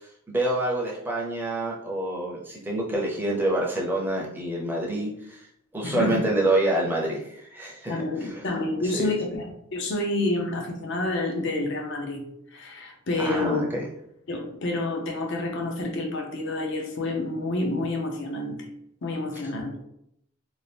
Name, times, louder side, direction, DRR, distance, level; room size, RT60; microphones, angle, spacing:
voice 1, 0.3-5.5 5.7-8.3 8.8-9.1 13.2-13.9, right 1 dB, 10° right, -3 dB, 0.5 m, -27 dB
voice 2, 5.8-6.2 7.9-13.6 14.3-18.7 19.0-19.8, left 2 dB, 55° left, 2 dB, 0.6 m, -29 dB
2.7 x 2.4 x 3.3 m, 0.74 s
head